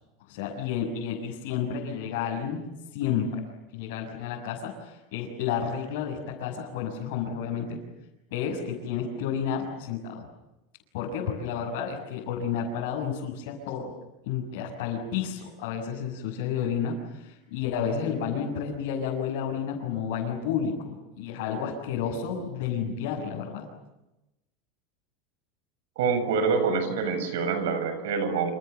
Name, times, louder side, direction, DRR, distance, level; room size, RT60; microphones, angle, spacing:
voice 1, 0.3-2.6 2.9-3.4 3.7-7.8 8.3-10.2 10.9-13.9 14.2-23.7, left 7 dB, 55° left, -4 dB, 6.6 m, -31 dB
voice 2, 26.0-28.5, right 5 dB, 85° right, 10 dB, 7.2 m, -26 dB
30.0 x 28.0 x 7.0 m, 0.96 s
supercardioid pair, 180°, 0 cm